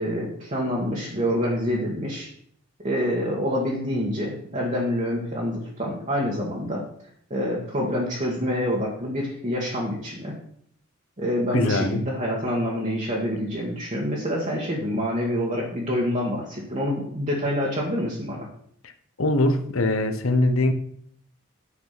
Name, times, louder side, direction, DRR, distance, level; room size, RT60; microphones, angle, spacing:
voice 1, 0.0-2.3 2.8-6.9 7.3-10.4 11.2-18.5, equal, 35° right, -4 dB, 1.8 m, -27 dB
voice 2, 11.5-12.1 18.8-18.9 19.2-20.7, left 2 dB, 70° left, 8 dB, 1.0 m, -22 dB
9.9 x 5.9 x 5.9 m, 0.65 s
head